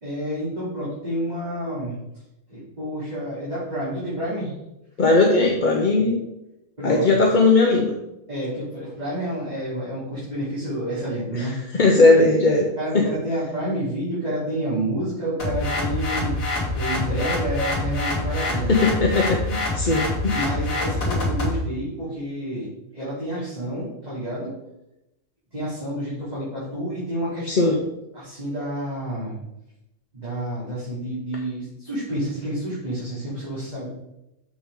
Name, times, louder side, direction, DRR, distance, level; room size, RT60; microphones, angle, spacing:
voice 1, 0.0-1.9 2.5-4.5 6.8-7.2 8.3-11.6 12.8-18.7 20.3-22.7 22.9-24.5 25.5-27.7 28.1-29.4 30.1-33.9, right 1 dB, 30° right, -11 dB, 3.1 m, -29 dB
voice 2, 5.0-6.2 6.8-7.9 11.3-12.7 12.9-13.0 18.3-20.5 27.5-27.8, left 3 dB, 45° left, 1 dB, 0.8 m, -19 dB
sound 1, 15.4-21.6, left 2 dB, 75° left, 2.6 m, -26 dB
6.9 x 6.2 x 3.7 m, 0.89 s
omnidirectional pair, 1.4 m